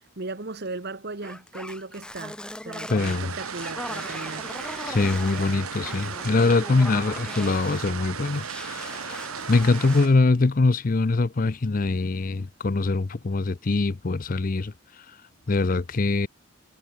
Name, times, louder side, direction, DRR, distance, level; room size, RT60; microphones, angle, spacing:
voice 1, 0.2-4.5, right 3 dB, 50° right, 1.3 m, -37 dB
sound 1, 1.2-7.9 8.2-10.2, left 1 dB, 5° left, 0.9 m, -39 dB
voice 2, 2.9-3.3 4.2-4.3 4.9-15.1 15.5-16.3, left 3 dB, 40° left, 0.5 m, -23 dB
sound 2, 3.0-10.1, right 6 dB, 90° right, 1.5 m, -36 dB
head